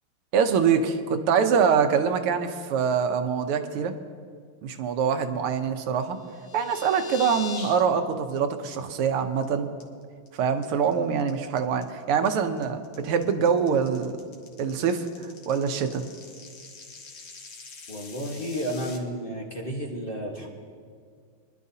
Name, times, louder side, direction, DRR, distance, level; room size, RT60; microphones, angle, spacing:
voice 1, 0.3-3.9 4.6-6.2 6.5-9.7 10.3-14.1 14.6-15.1 15.5-16.0, right 6 dB, 90° right, 7 dB, 1.7 m, -24 dB
sound 1, 6.1-7.8 8.1-8.4 8.7-8.8 9.2-9.4 9.8-10.3 10.6-19.0, left 4 dB, 80° left, 2.2 m, -43 dB
voice 2, 17.9-20.5, equal, 30° left, -3 dB, 1.2 m, -32 dB
23.5 x 11.5 x 2.7 m, 2.1 s
omnidirectional pair, 2.4 m